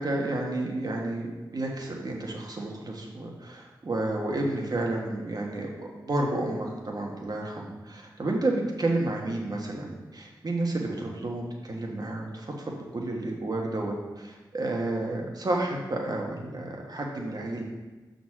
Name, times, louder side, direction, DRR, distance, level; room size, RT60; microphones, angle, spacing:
voice 1, 0.0-17.6, right 2 dB, 55° right, 0 dB, 1.4 m, -31 dB
6.0 x 4.0 x 6.3 m, 1.2 s
cardioid pair, 50°, 8 cm